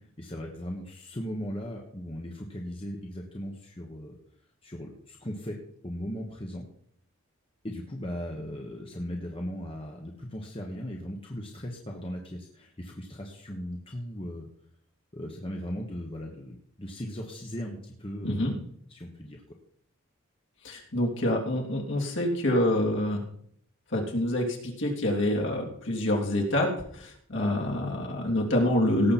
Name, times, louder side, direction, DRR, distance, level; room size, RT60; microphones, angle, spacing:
voice 1, 0.0-4.2 4.6-5.6 5.8-6.6 7.6-14.5 15.1-18.6 18.9-19.4, equal, 25° left, 1 dB, 1.3 m, -38 dB
voice 2, 18.2-18.5 20.6-23.2 23.9-29.1, left 1 dB, 55° left, -1 dB, 3.1 m, -26 dB
18.0 x 7.7 x 4.3 m, 0.66 s
head